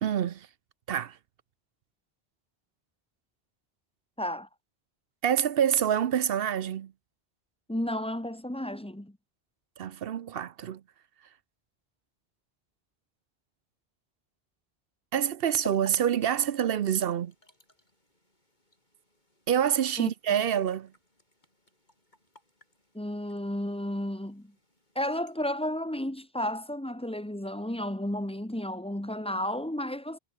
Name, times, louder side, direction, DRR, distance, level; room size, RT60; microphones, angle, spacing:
voice 1, 0.0-0.5 0.9-1.2 5.2-6.9 9.8-10.8 15.1-17.3 19.5-20.9, right 9 dB, 70° right, 0.8 m, -27 dB
voice 2, 4.2-4.5 7.7-9.2 20.0-20.1 22.9-24.5 24.9-30.2, left 1 dB, 5° left, 1.2 m, -32 dB
sound 1, 15.5-25.4, left 1 dB, 45° left, 6.9 m, -54 dB
omnidirectional pair, 1.1 m